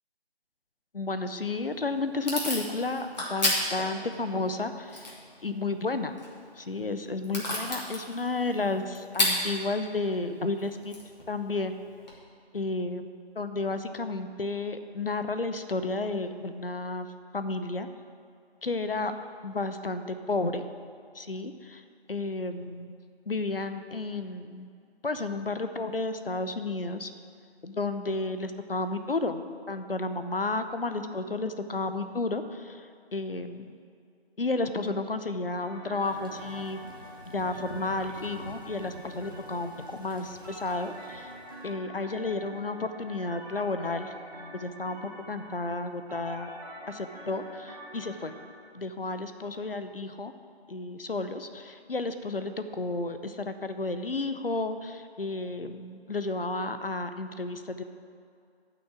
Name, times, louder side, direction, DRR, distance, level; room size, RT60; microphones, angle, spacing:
voice 1, 0.9-5.1 5.4-6.1 6.6-10.9 11.3-11.8 12.5-17.1 17.3-17.9 18.6-19.1 19.4-20.7 21.1-21.8 22.1-22.9 23.3-24.7 25.0-27.1 27.6-33.7 34.4-36.8 37.3-41.3 41.6-44.1 44.5-45.0 45.3-46.5 46.9-48.3 48.7-50.3 50.7-57.8, left 3 dB, 60° left, 9 dB, 0.7 m, -32 dB
Packing tape duct tape / Tearing, 1.4-12.1, left 1 dB, 40° left, 2.5 m, -35 dB
sound 1, 35.6-48.5, right 1 dB, 40° right, 2.3 m, -45 dB
Thunder / Rain, 36.0-41.7, equal, 20° right, 0.8 m, -48 dB
9.7 x 6.0 x 8.4 m, 2.3 s
figure-of-eight pair, 165°, 32 cm